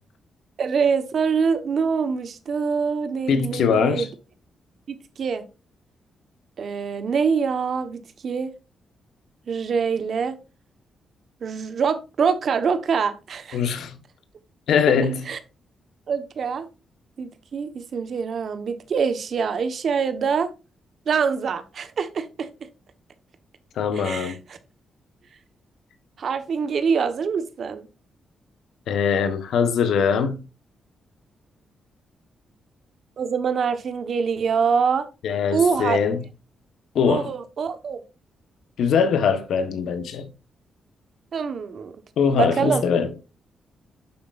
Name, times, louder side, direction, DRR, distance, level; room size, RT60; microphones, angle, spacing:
voice 1, 0.6-4.1 4.9-5.4 6.6-8.5 9.5-10.4 11.4-13.6 15.3-15.4 16.1-16.7 17.2-20.5 21.1-22.5 24.0-24.3 26.2-27.9 33.2-35.0 35.5-36.0 37.1-38.0 41.3-41.9 42.4-42.8, right 6 dB, 60° right, 1.3 m, -24 dB
voice 2, 3.3-4.1 13.5-13.9 14.7-15.3 23.8-24.4 28.9-30.4 35.2-36.2 36.9-37.3 38.8-40.3 42.2-43.1, left 6 dB, 80° left, 1.3 m, -22 dB
10.0 x 7.5 x 2.6 m
cardioid pair, 105°, 0 cm